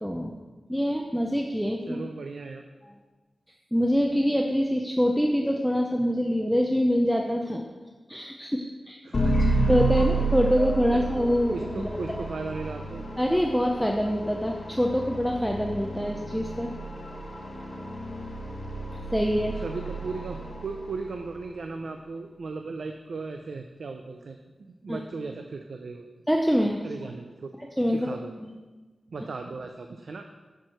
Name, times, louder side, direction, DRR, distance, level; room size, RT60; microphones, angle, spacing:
voice 1, 0.0-0.3 0.7-2.0 3.7-7.6 8.1-9.0 9.7-11.9 13.2-16.7 19.1-19.5 24.9-25.0 26.3-26.8 27.8-28.1 28.4-28.6, equal, ahead, 1 dB, 0.5 m, -25 dB
voice 2, 1.9-2.7 9.0-9.5 10.0-10.1 10.9-11.0 11.5-13.0 19.5-26.1 26.8-27.5 27.9-28.3 29.1-30.3, right 4 dB, 70° right, 4 dB, 0.5 m, -37 dB
sound 1, 9.1-21.3, right 2 dB, 40° left, 1.1 m, -30 dB
7.4 x 4.6 x 6.2 m, 1.3 s
wide cardioid pair, 115°, 0 cm